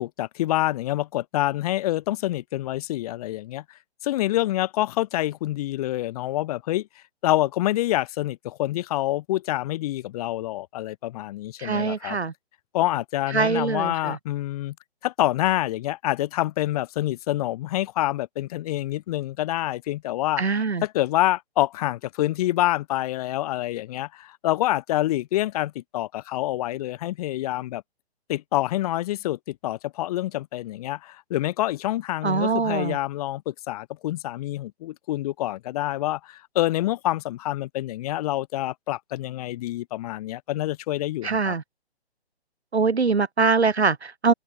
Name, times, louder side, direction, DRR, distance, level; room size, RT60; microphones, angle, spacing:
voice 1, 0.0-3.6 4.0-6.9 7.2-12.2 12.7-14.7 15.0-20.4 20.8-27.8 28.3-41.5, left 15 dB, 35° left, 4.4 m, -27 dB
voice 2, 11.6-12.3 13.3-14.2 20.4-20.8 32.2-33.0 41.2-41.6 42.7-44.3, right 4 dB, 80° right, 3.2 m, -23 dB
open air
figure-of-eight pair, 140°, 32 cm